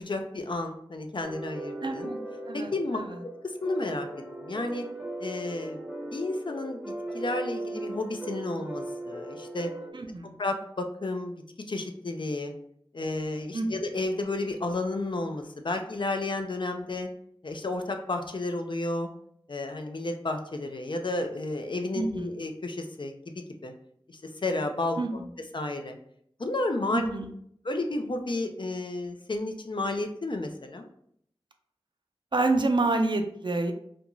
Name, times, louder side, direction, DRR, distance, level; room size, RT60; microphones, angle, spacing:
voice 1, 0.0-2.1 2.5-4.1 4.4-4.9 5.2-5.8 6.1-6.8 7.1-9.7 10.4-11.3 11.7-12.5 12.9-17.1 17.4-19.1 19.5-23.7 24.1-25.0 25.5-26.0 26.4-27.0 27.6-30.9, left 2 dB, 55° left, 5 dB, 0.4 m, -32 dB
sound 1, 1.2-9.9, right 1 dB, 5° right, 0.7 m, -38 dB
voice 2, 1.8-2.2 2.5-3.2 9.9-10.4 13.5-13.7 21.9-22.4 25.0-25.1 26.9-27.3 32.3-33.7, right 2 dB, 50° right, 5 dB, 0.4 m, -28 dB
2.5 x 2.3 x 2.9 m, 0.68 s
wide cardioid pair, 45°, 10 cm